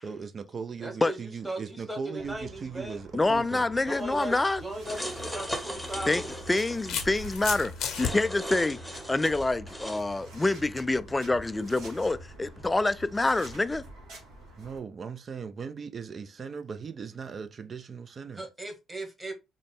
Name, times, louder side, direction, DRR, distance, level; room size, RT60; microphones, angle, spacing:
voice 1, 0.0-3.7 14.6-18.4, right 5 dB, 45° right, 0.5 m, -38 dB
voice 2, 0.8-3.0 3.9-6.3 18.3-19.3, right 2 dB, 15° right, 1.3 m, -38 dB
sound 1, 2.2-14.8, right 1 dB, 70° right, 1.3 m, -46 dB
voice 3, 3.1-4.6 6.1-6.2 6.5-8.8 9.1-13.8, left 2 dB, 20° left, 0.3 m, -26 dB
sound 2, 4.8-7.1 8.0-10.0, equal, ahead, 0.9 m, -38 dB
sound 3, 4.9-5.1 6.2-8.1, left 7 dB, 65° left, 0.7 m, -33 dB
3.7 x 2.1 x 3.5 m
hypercardioid pair, 50°, 0 cm